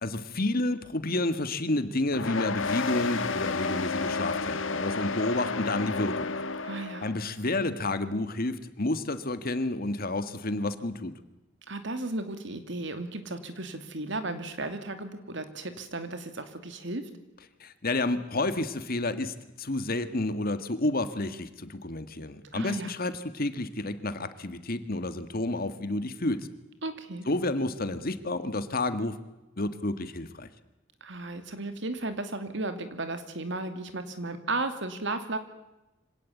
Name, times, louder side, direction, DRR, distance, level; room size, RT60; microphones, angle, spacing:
voice 1, 0.0-6.3 7.0-11.1 17.6-26.5 27.3-29.2 29.6-30.5, left 2 dB, 50° left, 11 dB, 1.8 m, -30 dB
sound 1, 2.1-7.2, left 4 dB, 90° left, 1.6 m, -31 dB
voice 2, 6.6-7.1 11.7-17.1 22.5-22.9 26.8-27.3 31.0-35.4, right 2 dB, 70° right, 9 dB, 2.6 m, -35 dB
25.5 x 17.5 x 8.5 m, 1.0 s
head